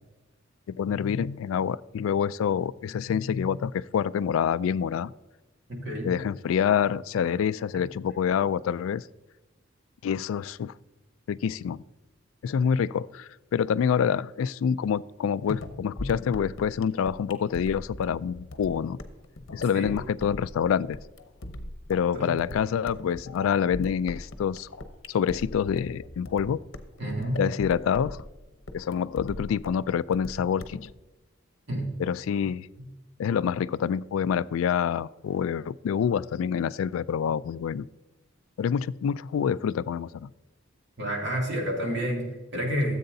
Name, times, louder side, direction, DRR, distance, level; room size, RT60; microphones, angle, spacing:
voice 1, 0.7-5.1 6.0-9.0 10.0-10.7 11.3-11.8 12.4-19.0 19.5-21.0 21.9-24.7 25.1-26.6 27.4-28.2 28.7-30.8 32.0-32.7 33.2-37.9 38.6-40.3, left 7 dB, 85° left, 19 dB, 0.3 m, -27 dB
voice 2, 5.7-6.2 19.7-20.0 22.1-22.3 27.0-27.4 31.7-31.9 32.8-32.9 41.0-43.0, equal, 60° right, 0 dB, 2.6 m, -29 dB
sound 1, 15.5-30.9, left 2 dB, 65° left, 0.9 m, -40 dB
14.0 x 7.8 x 2.7 m, 1.1 s
head